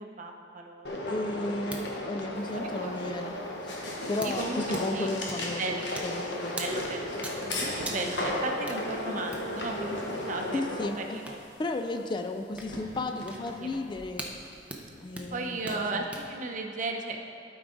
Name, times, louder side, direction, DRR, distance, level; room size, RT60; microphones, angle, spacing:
voice 1, 0.0-0.9 2.5-3.2 4.2-5.1 5.6-6.0 6.6-7.1 7.6-11.4 13.6-13.7 15.3-17.2, right 3 dB, 45° right, 3 dB, 0.7 m, -35 dB
sound 1, 0.8-10.9, left 1 dB, 70° left, 1.0 m, -35 dB
voice 2, 1.0-3.4 4.1-5.8 6.0-6.7 10.5-11.2 11.6-14.4 15.0-16.0, left 2 dB, 25° left, 6 dB, 0.3 m, -34 dB
sound 2, 1.2-16.3, right 1 dB, 10° right, 0.7 m, -46 dB
sound 3, 2.3-15.9, left 2 dB, 85° left, 1.2 m, -43 dB
12.5 x 4.7 x 3.8 m, 2.7 s
head